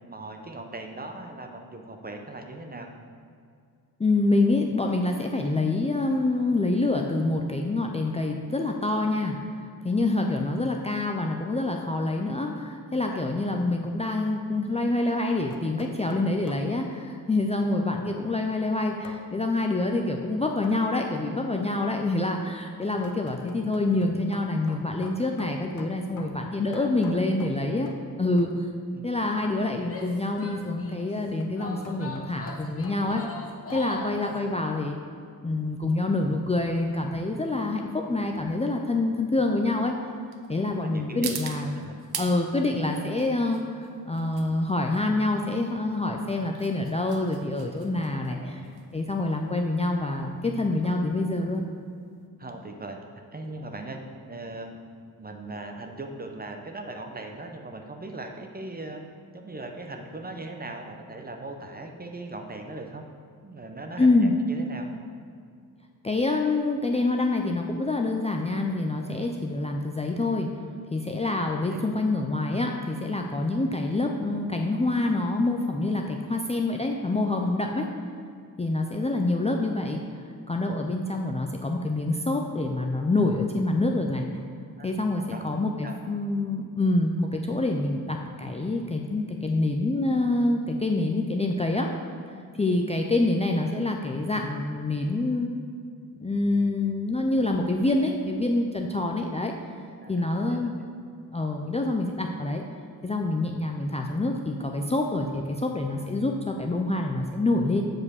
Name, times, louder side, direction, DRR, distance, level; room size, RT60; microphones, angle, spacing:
voice 1, 0.0-2.9 9.7-9.9 13.0-13.2 26.7-27.2 28.9-29.1 33.7-33.9 34.2-34.4 40.8-41.4 41.8-41.9 48.3-48.7 52.4-53.0 53.3-54.0 54.3-54.8 55.2-59.0 59.3-63.0 63.4-64.9 71.3-72.0 77.6-78.0 84.8-84.9 85.3-85.4 85.8-86.0 100.0-100.9, right 2 dB, 25° right, 4 dB, 0.8 m, -40 dB
voice 2, 4.0-9.4 9.8-27.9 28.2-28.7 29.0-33.2 33.7-35.0 35.4-39.9 40.5-41.8 42.2-48.6 48.9-51.7 64.0-64.3 66.0-70.5 70.9-77.9 78.6-80.0 80.5-84.2 84.8-91.9 92.6-95.5 96.2-99.5 100.1-100.9 101.3-102.6 103.0-107.8, left 2 dB, 15° left, 1 dB, 0.5 m, -26 dB
sound 1, 15.2-16.7 19.0-19.3 20.6-20.9 22.2-28.1 28.4-28.7 30.8-33.9, left 4 dB, 55° left, 0.8 m, -47 dB
Female speech woman speaking / Yell, 29.8-31.1 31.6-34.2, left 3 dB, 35° left, 1.0 m, -40 dB
sound 2, 35.6-52.3, right 7 dB, 80° right, 0.8 m, -44 dB
7.6 x 4.8 x 6.3 m, 2.2 s
wide cardioid pair, 115°, 37 cm